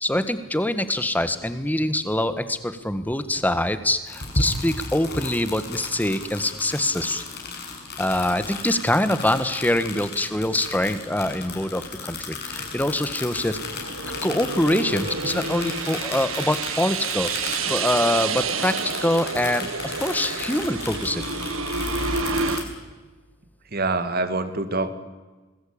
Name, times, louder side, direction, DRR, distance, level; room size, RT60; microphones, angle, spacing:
voice 1, 0.0-7.2 8.0-13.6 14.0-17.3 17.7-21.2, left 1 dB, 10° left, 11 dB, 1.4 m, -24 dB
sound 1, 4.0-22.6, left 3 dB, 50° left, 6.7 m, -34 dB
sound 2, 12.5-22.6, right 5 dB, 75° right, 1.7 m, -30 dB
voice 2, 23.7-24.9, right 3 dB, 45° right, 11 dB, 2.0 m, -25 dB
26.5 x 20.5 x 8.7 m, 1.2 s
head